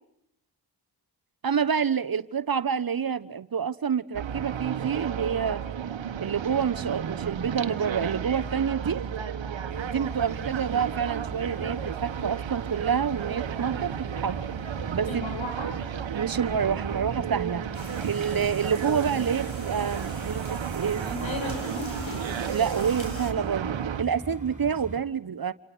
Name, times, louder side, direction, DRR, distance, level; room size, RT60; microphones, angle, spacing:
voice 1, 1.4-5.6 6.2-9.0 9.9-14.4 14.9-15.1 16.1-17.6 18.0-21.0 22.5-25.5, right 7 dB, 45° right, 1.2 m, -28 dB
sound 1, 4.1-24.0, right 8 dB, 65° right, 1.6 m, -33 dB
sound 2, 9.7-25.0, right 2 dB, 15° right, 7.5 m, -42 dB
voice 2, 15.1-15.8 20.9-22.3, left 2 dB, 70° left, 7.9 m, -36 dB
sound 3, 17.7-23.3, left 1 dB, 30° left, 5.9 m, -43 dB
28.5 x 27.0 x 6.3 m
cardioid pair, 50°, 48 cm